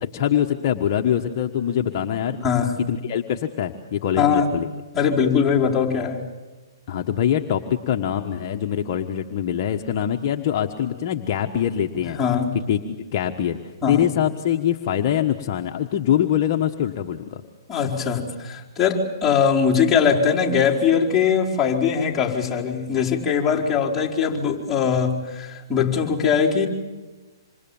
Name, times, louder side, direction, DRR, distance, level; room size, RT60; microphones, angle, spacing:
voice 1, 0.0-2.4 2.9-4.7 6.9-12.2 12.7-12.8 13.1-17.4, left 10 dB, 45° left, 3 dB, 1.4 m, -23 dB
voice 2, 2.3-2.8 4.2-4.5 4.9-6.3 12.2-12.6 13.8-14.1 17.7-26.7, left 6 dB, 10° left, -6 dB, 4.8 m, -21 dB
27.0 x 27.0 x 7.3 m, 1.2 s
hypercardioid pair, 140°, 2 cm